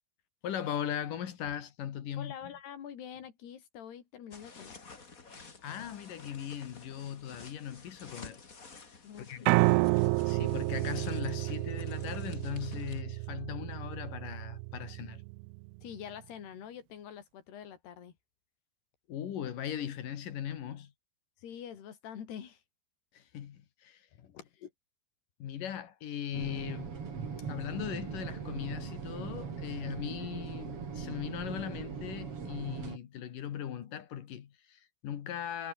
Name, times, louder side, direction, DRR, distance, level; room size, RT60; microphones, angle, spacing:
voice 1, 0.4-2.3 5.6-8.4 9.2-9.5 10.3-15.2 19.1-20.9 23.1-24.7 25.4-26.9 27.5-35.7, left 9 dB, 60° left, 3.2 m, -39 dB
voice 2, 2.2-4.8 9.0-9.6 15.8-18.2 21.4-22.6, left 9 dB, 85° left, 5.1 m, -45 dB
sound 1, 4.3-13.0, left 4 dB, 25° left, 2.2 m, -52 dB
Piano, 9.5-15.6, right 23 dB, 85° right, 2.5 m, -30 dB
sound 2, 26.3-33.0, right 6 dB, 40° right, 3.5 m, -40 dB
omnidirectional pair, 4.6 m